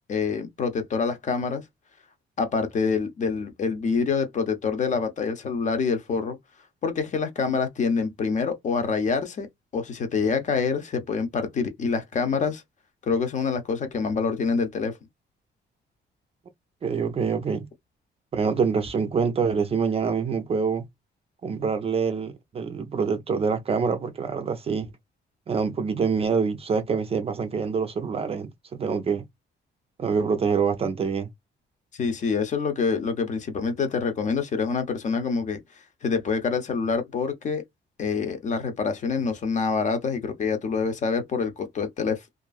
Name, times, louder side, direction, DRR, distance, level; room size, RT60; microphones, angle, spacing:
voice 1, 0.1-1.6 2.4-6.4 6.8-9.5 9.7-12.6 13.1-15.0 32.0-35.6 36.0-37.6 38.0-42.2, left 5 dB, 40° left, 0.7 m, -26 dB
voice 2, 16.8-17.7 18.3-20.8 21.4-24.9 25.5-29.2 30.0-31.3, right 5 dB, 30° right, 0.4 m, -25 dB
2.9 x 2.5 x 2.3 m
cardioid pair, 175°, 19 cm